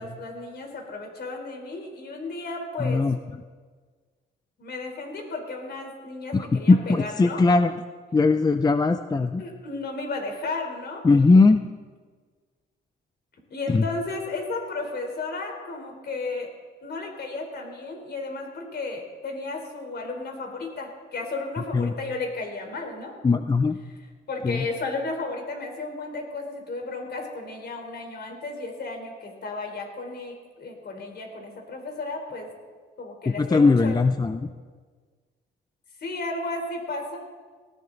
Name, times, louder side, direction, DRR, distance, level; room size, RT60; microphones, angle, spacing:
voice 1, 0.0-3.0 4.6-7.4 9.4-11.0 13.5-16.5 16.8-23.1 24.3-32.5 33.0-34.0 36.0-37.2, left 3 dB, 55° left, 3 dB, 3.9 m, -34 dB
voice 2, 2.8-3.2 6.3-7.7 8.1-9.4 11.0-11.6 13.7-13.8 21.7-21.9 23.2-23.8 24.4-24.7 33.3-34.5, left 3 dB, 20° left, 9 dB, 0.5 m, -20 dB
18.5 x 14.5 x 4.0 m, 1.5 s
cardioid pair, 90°, 20 cm